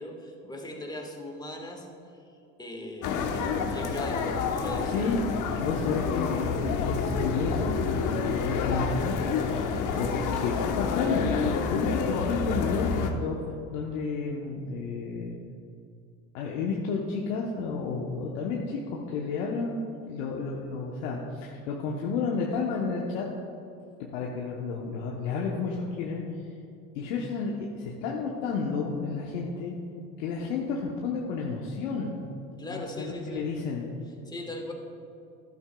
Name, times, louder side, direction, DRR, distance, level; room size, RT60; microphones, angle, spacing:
voice 1, 0.0-1.9 2.6-5.2 32.6-33.4 34.3-34.7, left 1 dB, 10° left, 1 dB, 1.5 m, -39 dB
sound 1, 3.0-13.1, left 5 dB, 50° left, 1.0 m, -28 dB
voice 2, 4.8-11.3 11.6-13.4 13.7-15.3 16.3-23.2 24.1-26.2 26.9-29.8 30.2-32.2 32.7-33.9, left 4 dB, 75° left, -1 dB, 1.0 m, -31 dB
12.0 x 11.0 x 2.3 m, 2.6 s
hypercardioid pair, 80°, 39 cm